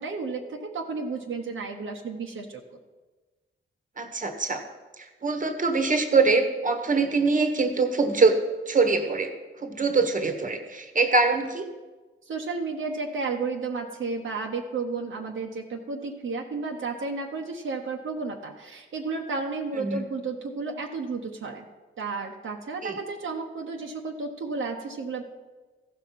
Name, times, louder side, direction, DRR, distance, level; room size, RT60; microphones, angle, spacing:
voice 1, 0.0-2.6 12.2-21.6 22.0-25.2, right 4 dB, 70° right, 1 dB, 1.1 m, -32 dB
voice 2, 4.0-4.6 5.2-8.4 8.7-9.3 9.6-11.7 19.8-20.0 22.8-23.0, right 4 dB, 40° right, 6 dB, 1.4 m, -23 dB
14.5 x 5.6 x 5.9 m, 1.3 s
cardioid pair, 75°, 21 cm